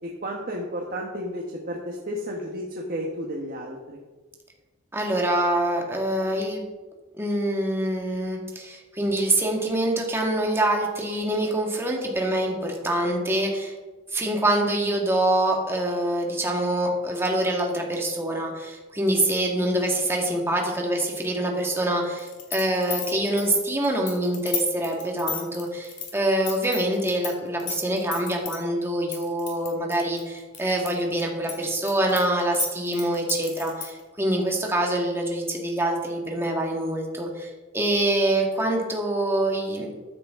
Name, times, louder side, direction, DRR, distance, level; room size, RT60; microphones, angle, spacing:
voice 1, 0.0-4.0, equal, 45° right, -1 dB, 1.3 m, -32 dB
voice 2, 4.9-6.6 7.1-13.7 14.1-39.9, right 1 dB, 10° right, 0 dB, 1.7 m, -25 dB
sound 1, 22.2-27.3 27.6-28.6 29.1-30.9 31.2-34.0, left 7 dB, 40° left, 2.7 m, -33 dB
14.0 x 9.7 x 3.7 m, 1.3 s
head